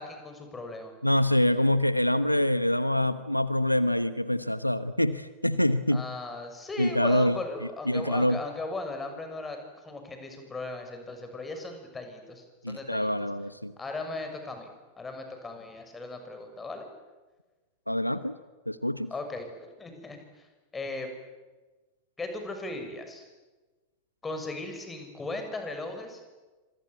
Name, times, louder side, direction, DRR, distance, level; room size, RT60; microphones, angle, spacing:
voice 1, 0.0-0.9 5.9-9.6 9.8-13.1 13.8-14.7 15.0-16.9 19.1-20.5 20.7-21.1 22.2-23.2 24.2-26.2, left 2 dB, 15° left, 6 dB, 6.7 m, -37 dB
voice 2, 1.0-6.0 6.8-7.4 7.9-8.4 12.6-13.7 17.9-18.4 18.7-19.1, left 1 dB, 90° left, 14 dB, 1.0 m, -25 dB
27.0 x 26.0 x 8.4 m, 1.3 s
figure-of-eight pair, 90°, 0 cm